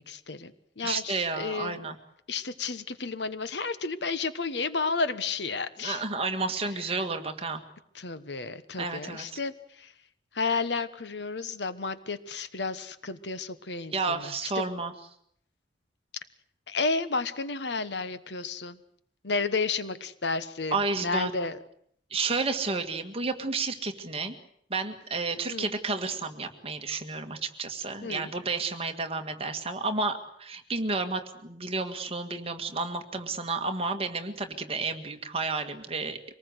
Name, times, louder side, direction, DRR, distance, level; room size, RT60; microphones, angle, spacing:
voice 1, 0.0-1.9 2.3-6.0 7.9-9.9 10.3-14.6 16.7-18.8 19.2-20.7 21.0-21.6 25.5-25.7 28.0-28.3, left 4 dB, 65° left, 13 dB, 1.2 m, -32 dB
voice 2, 0.8-2.0 5.8-7.6 8.8-9.4 13.9-14.9 20.7-21.3 22.1-24.3 24.7-36.2, right 3 dB, 30° right, 6 dB, 1.9 m, -31 dB
25.0 x 19.5 x 8.1 m, 0.68 s
head